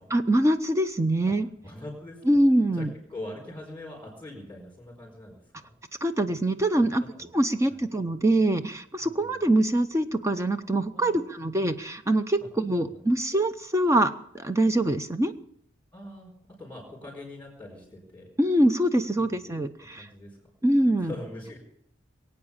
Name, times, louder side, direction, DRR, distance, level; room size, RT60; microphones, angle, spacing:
voice 1, 0.1-1.5 2.3-2.9 6.0-7.0 7.3-15.3 18.4-20.1 20.6-21.1, right 1 dB, 15° right, 9 dB, 0.6 m, -24 dB
voice 2, 1.6-2.4 2.7-5.7 7.2-7.3 7.6-7.8 9.0-9.3 10.9-11.2 12.8-13.0 15.9-16.3 16.6-18.3 19.1-19.4 19.9-20.4 21.0-21.6, left 1 dB, 10° left, -5 dB, 4.6 m, -42 dB
21.5 x 8.7 x 7.2 m, 0.70 s
head